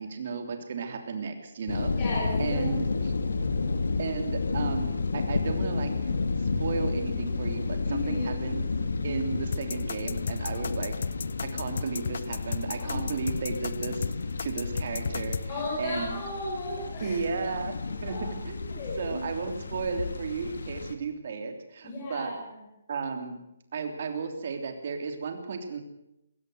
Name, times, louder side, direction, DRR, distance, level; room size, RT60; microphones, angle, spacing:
voice 1, 0.0-1.9 2.4-3.1 4.0-6.1 6.4-8.7 9.0-10.9 11.5-16.2 17.0-17.7 18.0-18.1 18.5-22.3 22.9-23.4 23.7-25.8, right 5 dB, 35° right, 6 dB, 3.2 m, -34 dB
sound 1, 1.7-20.9, left 4 dB, 80° left, 2.5 m, -31 dB
voice 2, 2.0-2.6 7.8-8.3 12.8-12.9 15.5-17.2 18.1-18.2 18.7-19.2 21.8-22.6, left 1 dB, 15° left, -6 dB, 6.2 m, -34 dB
sound 2, 9.5-15.4, left 6 dB, 45° left, 0.7 m, -34 dB
22.0 x 16.5 x 7.9 m, 0.85 s
hypercardioid pair, 180°, 0 cm